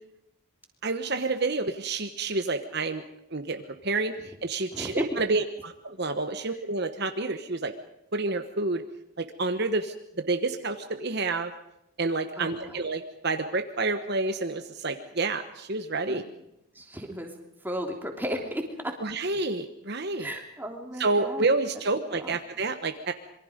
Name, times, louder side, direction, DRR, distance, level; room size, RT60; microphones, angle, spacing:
voice 1, 0.8-3.0 3.3-7.7 8.1-8.8 9.2-11.5 12.0-16.2 19.0-20.3 21.0-23.1, right 3 dB, 50° right, 7 dB, 1.2 m, -29 dB
voice 2, 4.7-5.2 12.4-12.8 16.1-16.2 16.7-17.3 17.6-19.0 20.2-21.5 22.1-22.4, equal, 10° right, 2 dB, 3.2 m, -34 dB
27.0 x 23.5 x 5.2 m, 0.85 s
head